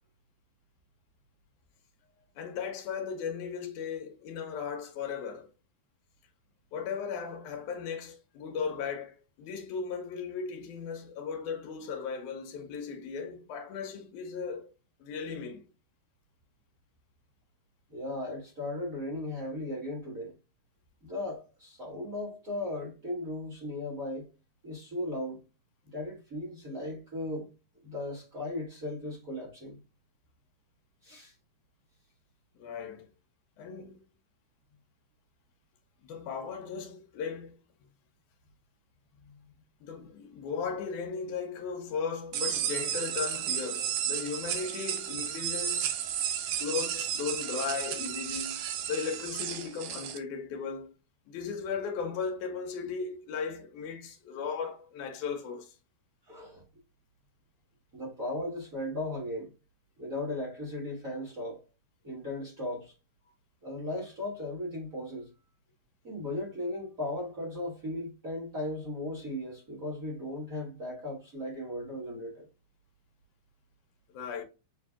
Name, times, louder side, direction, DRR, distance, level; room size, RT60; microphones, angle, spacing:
voice 1, 2.4-5.5 6.7-14.7 15.0-15.7 32.6-33.1 33.6-34.0 36.0-37.6 39.8-45.9 46.6-50.9 51.3-55.8 74.1-74.4, left 6 dB, 80° left, 2.1 m, -36 dB
voice 2, 17.9-20.3 21.0-24.3 24.6-25.4 25.8-27.5 27.8-29.8 31.0-31.3 39.2-39.3 56.3-56.6 57.9-59.5 60.0-61.6 62.0-62.9 63.6-65.3 66.0-72.5, left 1 dB, 35° right, 1.6 m, -37 dB
sound 1, 42.3-50.2, right 10 dB, 85° right, 2.4 m, -33 dB
6.7 x 2.6 x 2.2 m
omnidirectional pair, 3.7 m